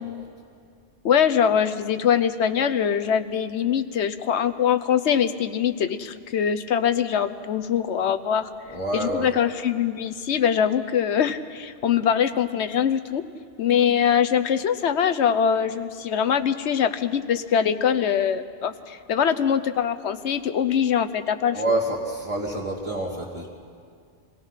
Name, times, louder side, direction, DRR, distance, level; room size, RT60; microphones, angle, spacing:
voice 1, 1.0-8.5 8.9-13.2 13.6-21.8, left 8 dB, 70° left, 10 dB, 1.1 m, -23 dB
voice 2, 8.7-9.3 21.5-23.5, right 2 dB, 30° right, -6 dB, 2.0 m, -27 dB
26.5 x 17.5 x 5.7 m, 2.3 s
omnidirectional pair, 1.2 m